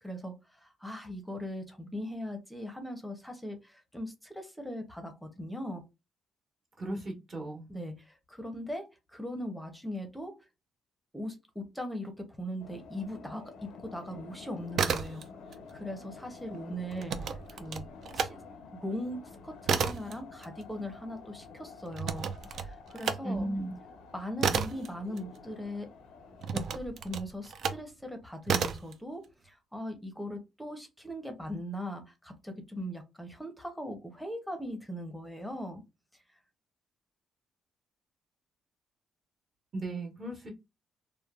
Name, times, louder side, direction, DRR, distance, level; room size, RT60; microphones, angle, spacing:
voice 1, 0.0-5.8 7.7-10.4 11.1-15.3 15.7-17.9 18.1-18.4 18.7-23.5 24.1-25.9 26.5-35.8, equal, 5° left, 0.7 m, -40 dB
voice 2, 6.8-7.6 23.2-23.7 39.7-40.5, right 1 dB, 40° right, 1.2 m, -35 dB
sound 1, 12.6-26.6, left 5 dB, 90° left, 0.5 m, -50 dB
sound 2, 14.6-15.6 15.9-18.3 18.7-25.8 26.4-27.9 28.4-28.9, right 6 dB, 65° right, 0.4 m, -33 dB
3.1 x 2.1 x 2.3 m
cardioid pair, 90°, 0 cm